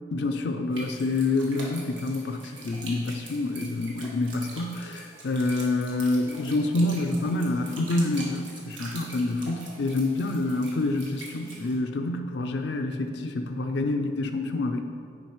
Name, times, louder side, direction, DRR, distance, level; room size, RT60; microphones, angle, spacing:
voice 1, 0.1-14.8, left 2 dB, 60° left, 5 dB, 0.4 m, -27 dB
sound 1, 0.7-11.8, right 2 dB, 75° right, 1.4 m, -44 dB
10.0 x 5.0 x 3.1 m, 2.3 s
head